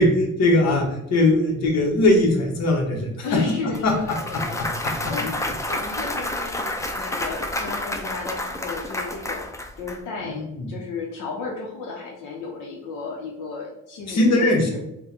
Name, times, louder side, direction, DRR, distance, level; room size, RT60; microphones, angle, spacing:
voice 1, 0.0-3.2 3.8-3.9 4.6-5.2 10.2-10.7 14.1-14.7, left 1 dB, 60° left, 1 dB, 1.0 m, -20 dB
voice 2, 3.2-9.5 9.8-10.4 10.7-14.8, left 4 dB, 85° left, -2 dB, 0.8 m, -34 dB
Clapping / Cheering / Applause, 3.7-10.0, left 1 dB, 10° left, 0.4 m, -29 dB
3.6 x 2.2 x 4.3 m, 0.85 s
cardioid pair, 90°, 30 cm